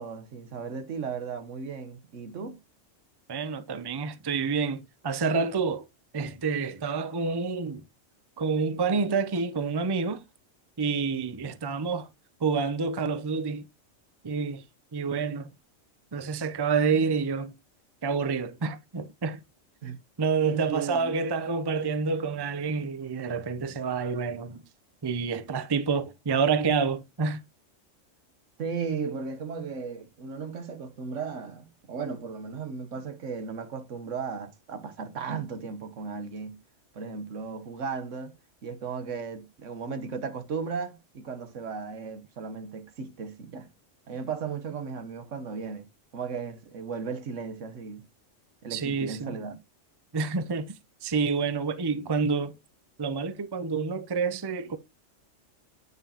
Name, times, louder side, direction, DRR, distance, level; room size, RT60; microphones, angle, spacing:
voice 1, 0.0-2.6 19.8-20.0 20.4-21.1 28.6-36.6 36.9-38.3 38.6-43.7 44.1-45.9 46.1-48.1 48.6-49.6, right 5 dB, 75° right, 1.4 m, -36 dB
voice 2, 3.3-5.9 6.1-7.8 8.4-10.2 10.8-12.1 12.4-13.6 14.2-14.6 14.9-15.5 16.1-17.5 18.0-19.4 20.2-24.6 25.0-27.4 48.7-49.4 50.1-50.7 51.0-52.5 53.0-54.8, right 5 dB, 25° right, 0.6 m, -28 dB
9.2 x 5.3 x 2.9 m
omnidirectional pair, 1.3 m